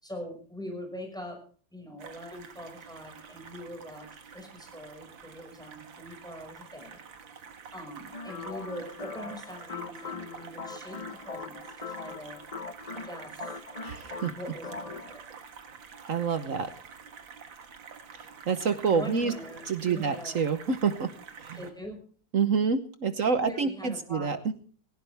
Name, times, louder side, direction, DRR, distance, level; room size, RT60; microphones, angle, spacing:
voice 1, 0.0-7.0 7.7-12.4 13.0-13.6 14.3-15.2 18.9-20.4 21.5-22.0 23.2-24.5, left 1 dB, ahead, 3 dB, 5.6 m, -42 dB
Stereo Water Flow, 2.0-21.7, right 6 dB, 80° right, 2.4 m, -48 dB
sound 1, 8.1-15.2, left 4 dB, 75° left, 0.3 m, -41 dB
voice 2, 13.8-14.3 16.1-16.7 18.5-19.3 19.7-21.1 21.4-21.6 22.3-24.4, right 5 dB, 50° right, 11 dB, 1.2 m, -27 dB
18.5 x 16.5 x 3.5 m, 0.42 s
omnidirectional pair, 2.0 m